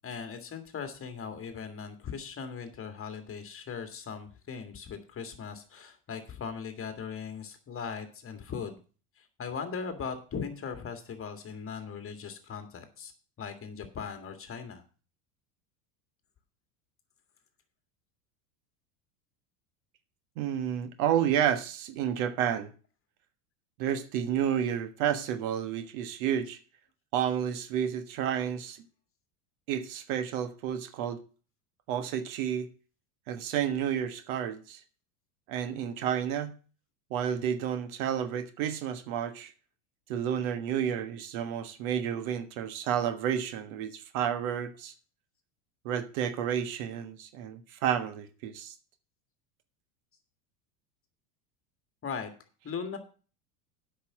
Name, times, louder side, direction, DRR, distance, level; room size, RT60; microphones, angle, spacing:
voice 1, 0.0-8.8 9.2-13.1 13.4-14.8 52.0-52.3 52.6-53.0, left 6 dB, 30° left, 2.0 m, -39 dB
voice 2, 20.4-22.7 23.8-26.6 27.1-28.8 29.7-31.2 31.9-32.7 33.3-34.8 35.5-36.5 37.1-39.5 40.1-44.9 45.8-48.7, right 9 dB, 65° right, 1.4 m, -30 dB
8.4 x 5.9 x 7.4 m
supercardioid pair, 105°, 46 cm